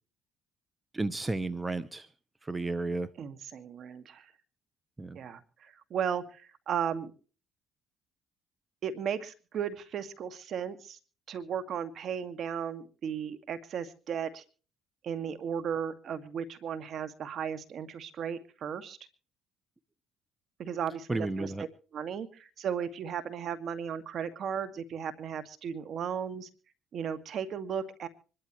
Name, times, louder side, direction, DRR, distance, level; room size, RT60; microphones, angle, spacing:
voice 1, 0.9-2.1 2.4-3.1 5.0-5.2 21.1-21.7, right 2 dB, 20° right, 15 dB, 0.9 m, -32 dB
voice 2, 3.2-4.3 5.1-7.1 8.8-11.0 11.3-14.4 15.0-19.0 20.6-21.5 21.9-26.5 26.9-28.1, right 7 dB, 60° right, 11 dB, 2.0 m, -35 dB
25.5 x 12.5 x 3.1 m, 0.38 s
supercardioid pair, 70°, 0 cm